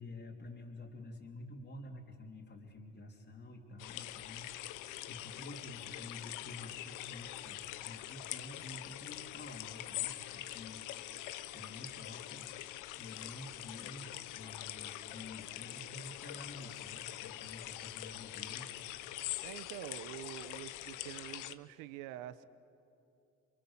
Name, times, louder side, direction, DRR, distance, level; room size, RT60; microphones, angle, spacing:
voice 1, 0.0-4.7 5.0-10.8 11.5-12.5 13.0-14.1 14.3-18.7, left 2 dB, 35° left, -2 dB, 3.5 m, -49 dB
sound 1, 3.8-21.5, left 15 dB, 70° left, 1.1 m, -44 dB
voice 2, 19.4-22.5, right 13 dB, 75° right, 14 dB, 1.1 m, -46 dB
30.0 x 24.0 x 7.3 m, 2.7 s
supercardioid pair, 80°, 32 cm